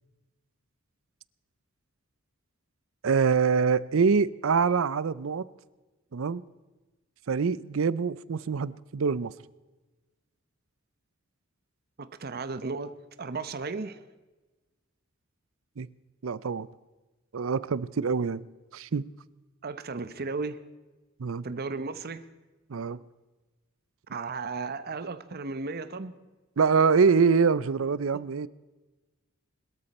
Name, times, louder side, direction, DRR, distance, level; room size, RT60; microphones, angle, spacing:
voice 1, 3.0-5.5 6.1-6.4 7.3-9.3 15.8-15.9 16.2-16.7 17.3-18.5 18.7-19.1 21.2-21.5 22.7-23.0 26.6-28.5, right 5 dB, 70° right, 0.5 m, -25 dB
voice 2, 12.0-14.0 19.6-20.6 21.4-22.2 24.1-26.1 28.1-28.3, right 4 dB, 50° right, 0.9 m, -35 dB
21.5 x 13.0 x 4.2 m
head